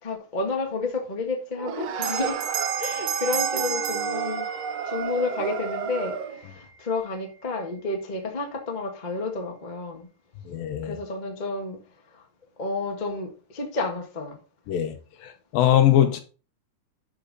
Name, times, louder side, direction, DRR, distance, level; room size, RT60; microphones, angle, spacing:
voice 1, 0.0-2.4 2.8-4.5 4.8-10.1 10.8-11.8 12.1-12.2 12.6-14.4, left 3 dB, 45° left, 0.5 m, -30 dB
sound 1, 1.6-6.4, right 8 dB, 75° right, 1.5 m, -31 dB
Bell, 2.0-6.8, right 7 dB, 60° right, 1.7 m, -33 dB
voice 2, 10.5-11.0 14.7-15.0 15.2-16.2, left 11 dB, 85° left, 2.8 m, -21 dB
12.0 x 4.5 x 4.1 m
omnidirectional pair, 4.0 m